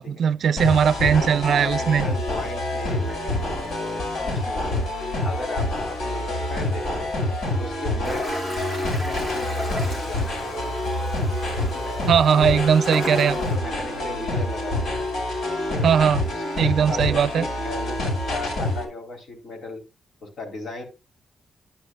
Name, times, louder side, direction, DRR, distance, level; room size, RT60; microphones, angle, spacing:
voice 1, 0.0-2.0 12.1-13.4 15.8-16.2 16.6-17.4, right 7 dB, 65° right, 0.5 m, -19 dB
sound 1, 0.6-18.8, left 1 dB, 75° left, 5.7 m, -27 dB
voice 2, 1.0-4.8 5.2-7.1 7.6-8.4 8.8-10.9 11.7-11.9 12.3-15.1 15.7-15.9 16.3-19.8 20.2-20.9, left 2 dB, 50° left, 4.0 m, -37 dB
Toilet flush, 8.0-13.5, left 1 dB, 25° left, 4.5 m, -35 dB
11.5 x 10.5 x 2.5 m
wide cardioid pair, 165°, 0 cm